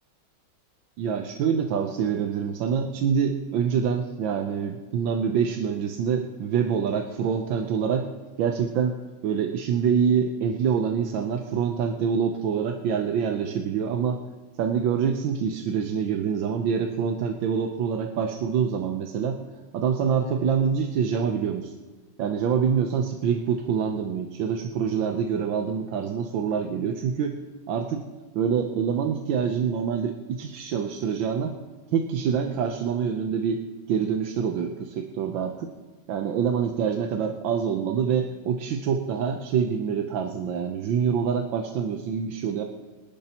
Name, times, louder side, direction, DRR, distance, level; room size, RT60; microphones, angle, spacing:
voice 1, 1.0-8.1 8.4-9.0 9.2-14.2 14.6-19.4 19.7-21.7 22.2-27.4 27.7-28.0 28.3-31.5 31.9-35.7 36.1-42.6, right 7 dB, 75° right, 4 dB, 1.5 m, -26 dB
25.0 x 11.0 x 2.9 m, 1.2 s
omnidirectional pair, 2.2 m